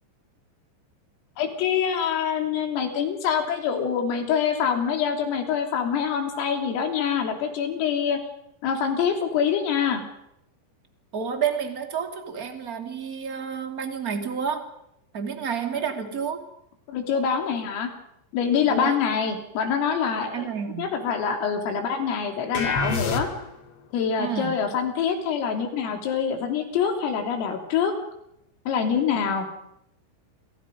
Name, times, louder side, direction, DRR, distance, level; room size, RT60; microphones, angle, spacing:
voice 1, 1.4-8.2 8.6-10.0 15.8-15.9 16.9-17.9 18.3-20.5 20.8-23.3 23.9-27.9 28.7-29.5, left 7 dB, 85° left, 4 dB, 5.8 m, -25 dB
voice 2, 11.1-14.7 15.1-16.4 18.7-19.0 20.3-20.9 24.2-24.6, right 7 dB, 30° right, 5 dB, 1.7 m, -30 dB
sound 1, 22.5-23.7, left 4 dB, 55° left, 1.6 m, -27 dB
28.0 x 27.5 x 5.3 m, 0.80 s
omnidirectional pair, 5.8 m